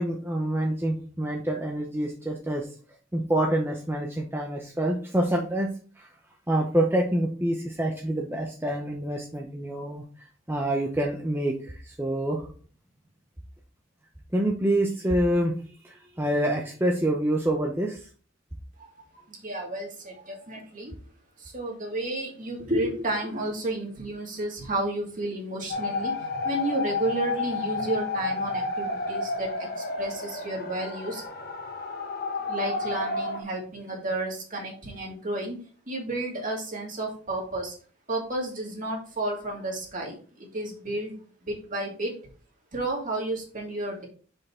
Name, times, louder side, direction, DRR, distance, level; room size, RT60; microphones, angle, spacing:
voice 1, 0.0-2.7 3.1-6.1 6.5-12.5 14.3-15.6 15.8-18.1, right 1 dB, 10° right, 0 dB, 0.7 m, -27 dB
voice 2, 19.3-20.9 21.4-26.1 26.4-31.2 32.5-35.6 35.9-37.7 38.1-42.1 42.7-44.1, right 1 dB, 45° right, 0 dB, 2.3 m, -32 dB
sound 1, 25.7-33.4, left 3 dB, 50° left, 1.2 m, -31 dB
6.4 x 5.4 x 3.6 m, 0.40 s
head